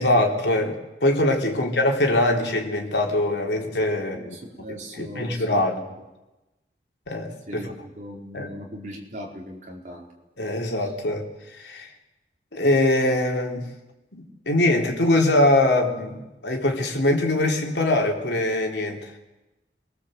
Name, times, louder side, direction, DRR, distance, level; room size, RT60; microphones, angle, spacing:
voice 1, 0.0-4.4 4.7-5.8 7.1-7.7 8.3-8.5 10.4-11.3 11.5-11.9 12.5-13.7 14.1-19.1, left 1 dB, 85° left, 2 dB, 3.7 m, -23 dB
voice 2, 4.1-5.8 7.5-10.1, equal, 45° right, -1 dB, 4.6 m, -39 dB
27.0 x 22.0 x 7.9 m, 1.0 s
head